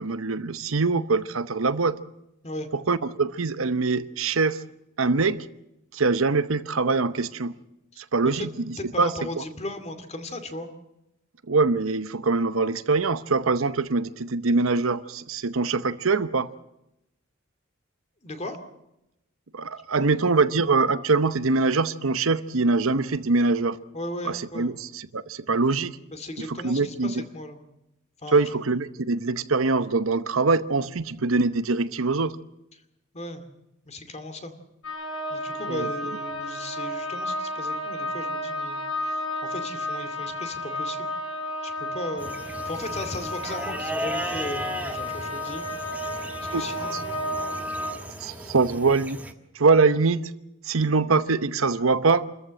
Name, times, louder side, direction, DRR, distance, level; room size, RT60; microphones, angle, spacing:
voice 1, 0.0-2.0 2.7-4.6 5.0-5.5 5.9-7.5 8.0-8.5 9.0-9.4 11.5-16.5 19.5-23.8 24.2-26.0 26.4-27.2 28.3-32.4 35.7-35.9 46.5-46.6 46.9-47.0 48.2-49.2 49.5-50.3 50.6-52.3, right 3 dB, 70° right, 0.9 m, -23 dB
voice 2, 8.8-10.7 18.2-18.6 20.0-20.1 23.9-24.7 26.1-27.6 28.2-28.4 33.1-33.4 33.9-34.5 35.3-38.8 39.1-41.1 41.6-45.6 46.5-47.2, left 1 dB, 35° left, 2.5 m, -36 dB
sound 1, 34.8-47.9, left 1 dB, 80° left, 4.2 m, -32 dB
sound 2, 42.2-49.3, right 1 dB, 10° right, 1.4 m, -36 dB
27.5 x 14.0 x 7.7 m
head